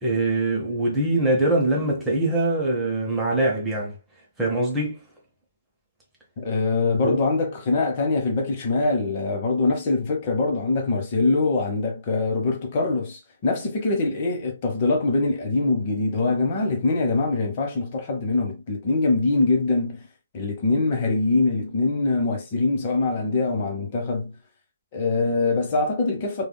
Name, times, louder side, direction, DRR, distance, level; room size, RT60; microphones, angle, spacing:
voice 1, 0.0-4.0 4.4-5.0 7.0-7.2, right 2 dB, 10° right, 0.9 m, -23 dB
voice 2, 6.4-20.1 20.3-24.3 24.9-26.5, left 3 dB, 40° left, 1.0 m, -23 dB
3.4 x 2.3 x 2.2 m
hypercardioid pair, 140°, 0 cm